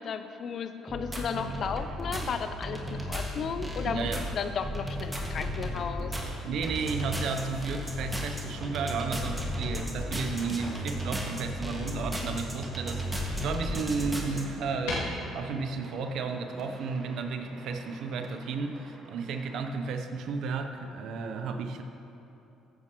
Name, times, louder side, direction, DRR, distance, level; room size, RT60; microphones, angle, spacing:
voice 1, 0.0-6.2, left 6 dB, 55° left, 9 dB, 0.6 m, -34 dB
sound 1, 0.9-14.4, equal, 15° right, 1.9 m, -34 dB
voice 2, 3.8-4.3 6.4-21.8, right 4 dB, 65° right, 6 dB, 0.7 m, -33 dB
sound 2, 6.7-8.7 10.1-11.4 12.2-13.5 13.9-15.0, left 3 dB, 80° left, 2.5 m, -44 dB
sound 3, 7.5-19.6, right 2 dB, 45° right, 1.6 m, -50 dB
15.0 x 8.7 x 3.0 m, 3.0 s
hypercardioid pair, 55°, 0 cm